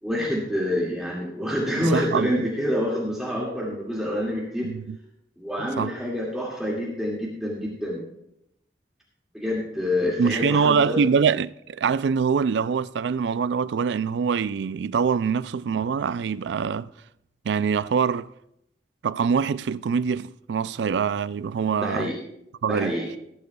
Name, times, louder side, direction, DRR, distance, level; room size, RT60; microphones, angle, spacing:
voice 1, 0.0-4.7 5.4-8.0 9.3-11.0 21.8-22.2 22.7-23.1, left 1 dB, 5° right, 2.1 m, -27 dB
voice 2, 1.8-2.3 4.6-5.0 5.8-5.9 10.2-16.9 17.5-18.3 19.0-22.1 22.6-22.9, right 6 dB, 80° right, 0.3 m, -24 dB
18.5 x 10.5 x 2.3 m
head